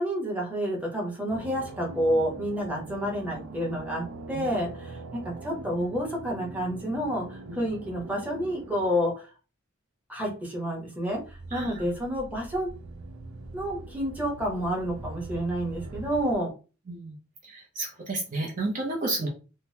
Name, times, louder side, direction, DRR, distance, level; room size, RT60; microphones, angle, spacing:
voice 1, 0.0-9.3 10.1-12.7 13.5-16.5, equal, 10° right, -2 dB, 1.0 m, -29 dB
sound 1, 1.3-9.1 11.1-16.3, right 2 dB, 90° right, 0.4 m, -42 dB
voice 2, 16.9-17.2 17.4-19.3, right 2 dB, 40° right, 0 dB, 0.6 m, -31 dB
3.7 x 2.0 x 2.7 m, 0.34 s
head